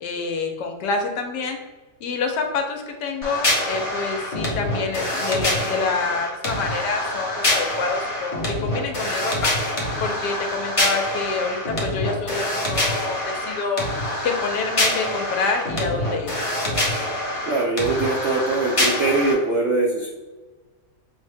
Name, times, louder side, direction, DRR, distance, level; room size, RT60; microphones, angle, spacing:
voice 1, 0.0-1.6 2.0-9.5 10.0-13.9 14.2-16.3, left 4 dB, 80° left, 4 dB, 1.2 m, -27 dB
sound 1, 3.2-19.3, left 1 dB, 30° left, 0.6 m, -25 dB
voice 2, 17.5-20.1, right 3 dB, 80° right, -1 dB, 0.6 m, -22 dB
5.9 x 2.1 x 3.3 m, 1.3 s
omnidirectional pair, 1.9 m